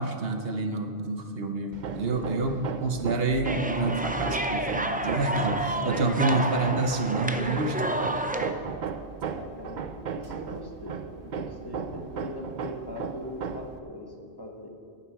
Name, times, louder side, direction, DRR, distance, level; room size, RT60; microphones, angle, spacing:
voice 1, 0.0-8.0, right 3 dB, 70° right, 6 dB, 1.1 m, -28 dB
Hammer, 1.7-13.8, right 6 dB, 55° right, 0.7 m, -36 dB
sound 1, 3.4-8.5, right 1 dB, 10° right, 0.5 m, -30 dB
voice 2, 9.3-14.1 14.4-14.7, left 1 dB, 20° left, 1 dB, 1.3 m, -40 dB
11.0 x 7.3 x 9.3 m, 2.3 s
omnidirectional pair, 1.1 m